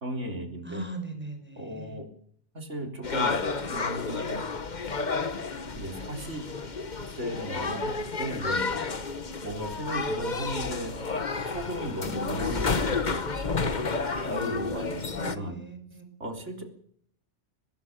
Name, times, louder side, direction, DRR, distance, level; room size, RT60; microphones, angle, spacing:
voice 1, 0.0-0.8 1.6-2.1 2.5-3.4 3.7-4.5 5.8-6.4 7.2-7.9 8.2-8.7 9.4-13.2 14.2-15.6 16.2-16.6, right 1 dB, 75° right, 3 dB, 4.0 m, -36 dB
voice 2, 0.6-2.0 15.1-16.0, right 2 dB, 10° right, 5 dB, 5.1 m, -39 dB
sound 1, 3.0-15.4, left 4 dB, 40° left, 1.3 m, -31 dB
24.5 x 19.0 x 6.6 m, 0.65 s
omnidirectional pair, 1.3 m